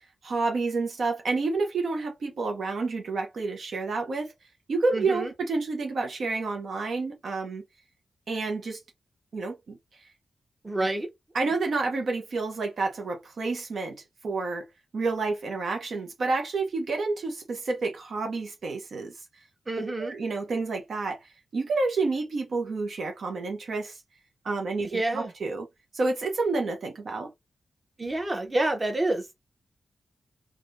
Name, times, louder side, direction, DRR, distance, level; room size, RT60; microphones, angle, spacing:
voice 1, 0.0-4.3 4.7-7.6 8.3-8.8 9.3-9.8 11.3-14.7 14.9-19.1 19.8-24.0 24.4-25.7 25.9-27.3, right 3 dB, 70° right, 0.7 m, -29 dB
voice 2, 4.9-5.3 10.6-11.1 19.7-20.1 24.8-25.3 28.0-29.3, right 2 dB, 30° right, 1.0 m, -28 dB
3.4 x 2.3 x 2.5 m
cardioid pair, 65°, 0 cm